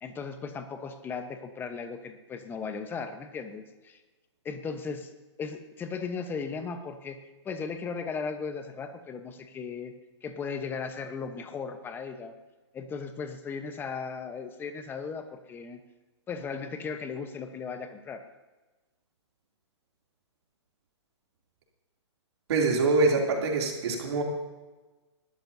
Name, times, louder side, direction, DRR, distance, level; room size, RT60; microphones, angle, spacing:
voice 1, 0.0-4.0 4.4-5.1 5.4-7.2 7.4-9.9 10.2-12.3 12.7-15.8 16.3-18.2, left 5 dB, 15° left, 8 dB, 1.0 m, -36 dB
voice 2, 22.5-24.2, right 3 dB, 60° right, 0 dB, 2.9 m, -24 dB
20.0 x 12.5 x 2.7 m, 1.2 s
hypercardioid pair, 145°, 15 cm